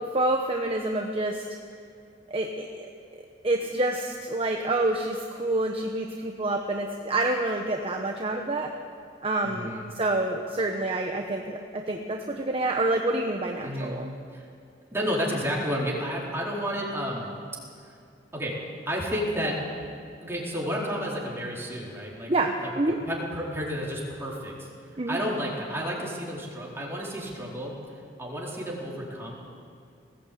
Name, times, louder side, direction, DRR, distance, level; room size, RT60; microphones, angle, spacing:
voice 1, 0.0-1.5 2.3-2.9 3.4-8.7 9.2-9.7 9.9-14.1 22.3-23.0 25.0-25.2, right 2 dB, 35° right, 2 dB, 1.1 m, -27 dB
voice 2, 9.4-9.9 13.6-13.9 14.3-14.5 14.9-17.3 17.9-18.0 18.3-18.6 18.9-19.6 20.2-22.3 23.0-24.7 25.1-27.7 28.2-29.3, equal, 15° right, -4 dB, 4.3 m, -31 dB
20.0 x 17.0 x 8.6 m, 2.4 s
head